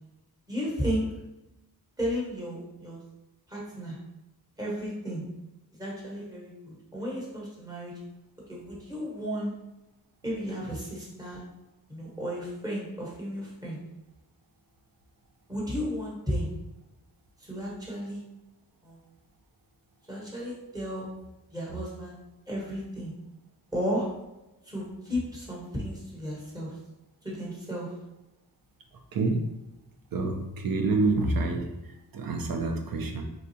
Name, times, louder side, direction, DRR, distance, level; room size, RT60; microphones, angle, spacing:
voice 1, 0.5-1.1 2.0-3.0 3.5-4.0 4.6-5.2 5.8-7.9 8.5-9.5 10.2-11.4 11.9-13.8 15.5-16.5 17.4-18.2 18.8-19.0 20.1-21.1 21.5-22.1 22.5-23.1 23.7-24.1 24.6-26.8 27.2-27.9, equal, 10° right, -5 dB, 1.2 m, -33 dB
voice 2, 30.1-31.7 32.1-33.2, right 3 dB, 65° right, 4 dB, 0.6 m, -27 dB
4.1 x 2.3 x 2.7 m, 0.99 s
wide cardioid pair, 85°, 37 cm